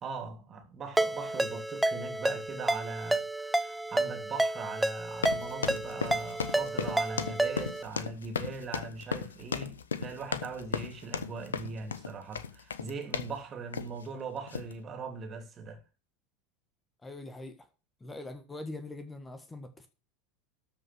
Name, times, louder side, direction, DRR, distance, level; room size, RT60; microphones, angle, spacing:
voice 1, 0.0-15.8, right 4 dB, 30° right, 3.1 m, -40 dB
Ringtone, 1.0-7.8, right 1 dB, 5° right, 0.8 m, -30 dB
sound 1, 5.1-13.4 13.7-14.0 14.5-14.7, left 6 dB, 75° left, 0.9 m, -35 dB
voice 2, 17.0-17.6 18.0-19.9, left 2 dB, 15° left, 1.6 m, -42 dB
13.5 x 5.6 x 6.2 m
figure-of-eight pair, 80°, 0 cm